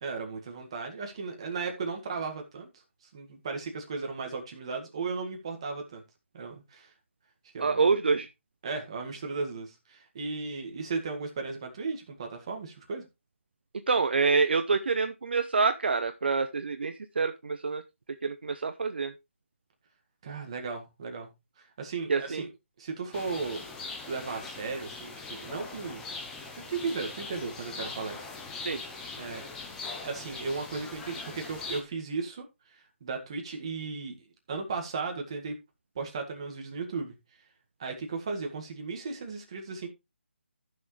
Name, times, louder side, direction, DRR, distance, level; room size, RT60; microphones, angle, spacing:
voice 1, 0.0-2.7 3.1-6.0 6.3-6.9 7.5-7.8 8.6-13.1 20.2-21.3 21.6-22.5 22.8-23.6 24.1-26.0 26.5-28.3 29.2-29.5 30.0-32.4 33.0-34.2 34.5-35.6 36.0-37.1 37.8-39.9, right 4 dB, 25° right, 1.9 m, -35 dB
voice 2, 7.6-8.3 13.7-17.8 18.2-19.1 22.1-22.5 28.6-28.8, right 4 dB, 55° right, 0.7 m, -27 dB
sound 1, 23.1-31.8, left 3 dB, 5° left, 0.7 m, -41 dB
14.0 x 6.3 x 3.2 m
hypercardioid pair, 175°, 7 cm